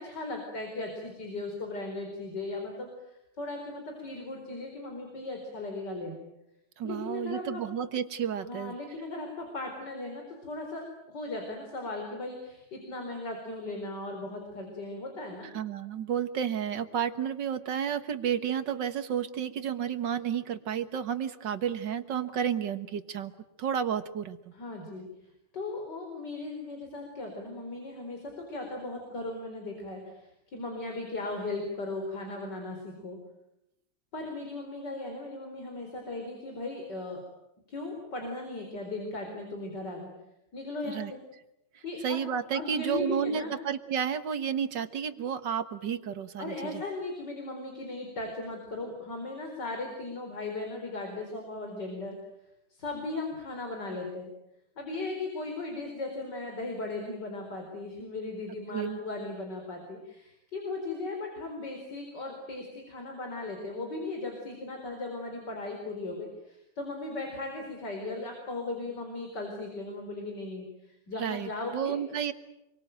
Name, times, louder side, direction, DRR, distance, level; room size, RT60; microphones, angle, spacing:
voice 1, 0.0-6.2 6.8-7.6 8.4-10.9 11.1-15.5 24.5-33.2 34.1-37.2 37.7-40.1 40.5-41.2 41.8-42.2 42.5-43.6 46.4-52.2 52.7-54.3 54.8-72.0, left 2 dB, 75° left, 3 dB, 5.1 m, -37 dB
voice 2, 6.8-8.7 15.5-23.3 23.6-24.4 40.9-41.1 42.0-46.8 58.7-59.0 71.1-72.3, right 8 dB, 90° right, 11 dB, 2.1 m, -31 dB
28.0 x 23.5 x 9.2 m, 0.88 s
omnidirectional pair, 1.9 m